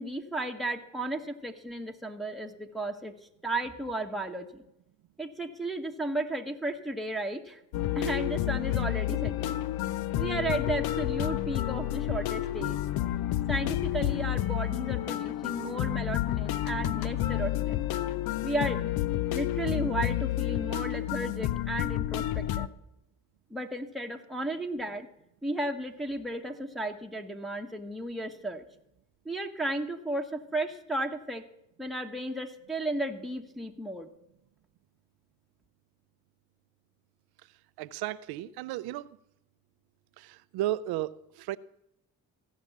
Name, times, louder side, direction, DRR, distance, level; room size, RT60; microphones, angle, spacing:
voice 1, 0.0-3.1 3.4-4.6 5.2-7.6 7.9-9.6 10.1-12.8 13.5-17.8 18.4-18.8 19.3-22.7 23.5-25.1 25.4-28.6 29.2-31.4 31.8-34.1, right 1 dB, ahead, 1.2 m, -34 dB
sound 1, 7.7-22.7, left 13 dB, 75° left, 0.6 m, -30 dB
voice 2, 37.8-39.1 40.2-41.6, right 14 dB, 85° right, 0.5 m, -34 dB
15.5 x 5.6 x 7.1 m
supercardioid pair, 55°, 37 cm